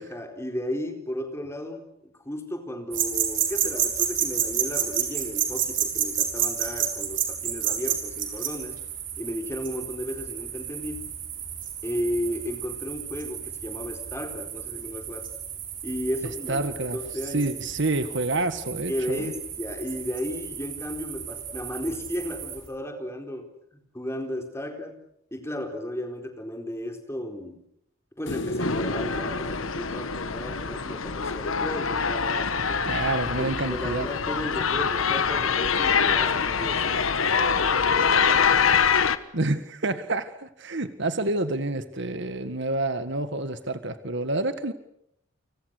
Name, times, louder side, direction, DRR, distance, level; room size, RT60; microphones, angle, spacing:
voice 1, 0.0-8.8 9.2-11.0 11.8-15.3 15.8-16.7 16.9-17.5 18.9-25.0 25.3-27.6 28.2-32.8 33.4-38.2, left 1 dB, 15° left, 4.2 m, -34 dB
sound 1, 2.9-22.7, right 9 dB, 40° right, 6.2 m, -31 dB
voice 2, 16.5-17.0 17.2-19.3 32.9-34.1 39.3-44.7, right 2 dB, 60° right, 1.8 m, -28 dB
sound 2, 28.3-31.5 34.1-34.2, left 1 dB, 60° left, 1.6 m, -35 dB
sound 3, 28.6-39.2, left 6 dB, 75° left, 1.4 m, -24 dB
30.0 x 26.0 x 6.7 m
head